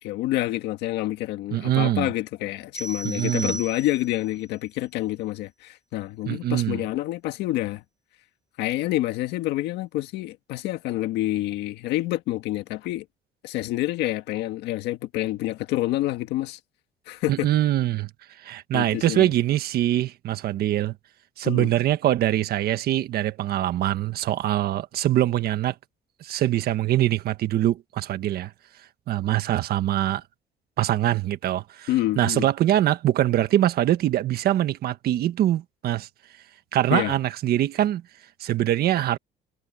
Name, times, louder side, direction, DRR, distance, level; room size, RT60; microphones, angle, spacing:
voice 1, 0.0-7.8 8.6-13.0 13.4-16.6 17.1-17.5 18.7-19.3 21.4-21.7 31.9-32.5 36.9-37.1, left 16 dB, 90° left, 1.8 m, -28 dB
voice 2, 1.5-2.1 3.0-3.6 6.2-6.8 17.3-18.1 18.4-20.9 21.4-25.7 26.2-28.5 29.1-30.2 30.8-31.9 32.2-36.1 36.7-38.0 38.4-39.2, right 13 dB, 65° right, 1.5 m, -23 dB
sound 1, 2.7-4.3, right 1 dB, 5° right, 0.9 m, -35 dB
cardioid pair, 110°, 17 cm